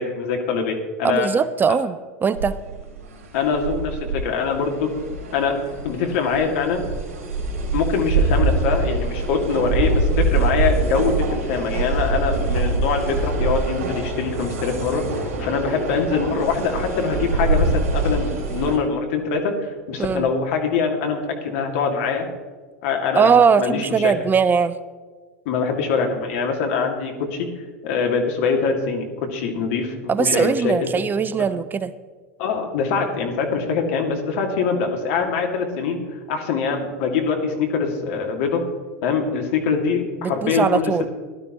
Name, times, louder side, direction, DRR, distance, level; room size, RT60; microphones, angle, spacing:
voice 1, 0.0-1.3 1.7-1.8 3.3-4.9 5.3-5.6 5.8-6.8 7.7-22.3 22.8-23.3 23.6-24.1 25.5-27.5 27.8-30.9 32.4-38.6 39.0-40.9, left 5 dB, 60° left, 3 dB, 2.2 m, -23 dB
voice 2, 1.0-2.6 20.0-20.3 23.1-24.8 30.1-31.9 40.2-41.0, right 6 dB, 25° right, 15 dB, 0.5 m, -20 dB
sound 1, 2.4-18.8, right 3 dB, 70° right, 3.5 m, -24 dB
16.5 x 12.0 x 3.0 m, 1.4 s
hypercardioid pair, 85°, 8 cm